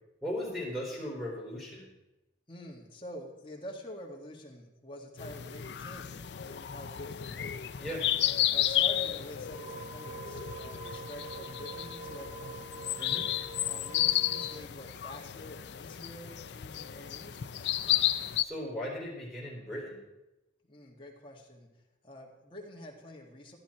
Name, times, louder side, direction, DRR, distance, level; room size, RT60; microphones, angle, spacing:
voice 1, 0.2-1.9 7.8-8.1 13.0-13.3 18.4-20.0, left 1 dB, ahead, -6 dB, 3.9 m, -37 dB
voice 2, 2.5-7.8 8.5-12.9 13.7-17.7 20.6-23.6, equal, 25° left, -1 dB, 1.9 m, -47 dB
sound 1, 5.2-18.4, left 12 dB, 65° left, 0.5 m, -32 dB
sound 2, 9.4-14.5, right 3 dB, 25° right, 3.0 m, -45 dB
14.0 x 10.5 x 4.4 m, 0.97 s
head